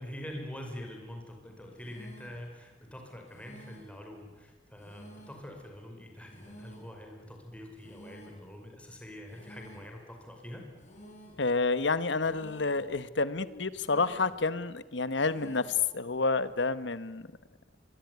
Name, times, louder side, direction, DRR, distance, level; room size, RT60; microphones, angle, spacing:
voice 1, 0.0-10.7, equal, 5° left, 2 dB, 5.5 m, -45 dB
sound 1, 1.8-2.5 3.3-4.0 4.8-5.5 6.3-7.0 7.8-8.5 9.3-10.0 10.8-11.5 12.2-12.9 13.7-14.4 15.2-15.9, equal, 40° left, 7.3 m, -52 dB
voice 2, 11.4-17.3, left 4 dB, 70° left, 15 dB, 1.2 m, -29 dB
24.5 x 23.0 x 9.5 m, 1.2 s
head